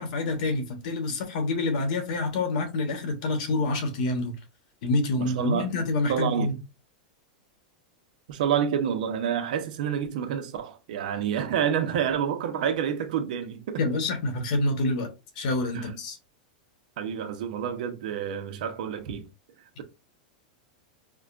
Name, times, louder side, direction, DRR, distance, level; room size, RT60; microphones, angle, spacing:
voice 1, 0.0-4.4 4.8-6.6 13.8-15.1 15.4-16.2, left 2 dB, 60° left, 1.2 m, -27 dB
voice 2, 5.2-5.7 6.1-6.5 8.3-13.8 15.7-15.9 17.0-19.3, right 8 dB, 70° right, 0.7 m, -28 dB
4.8 x 2.2 x 2.4 m
supercardioid pair, 150°, 5 cm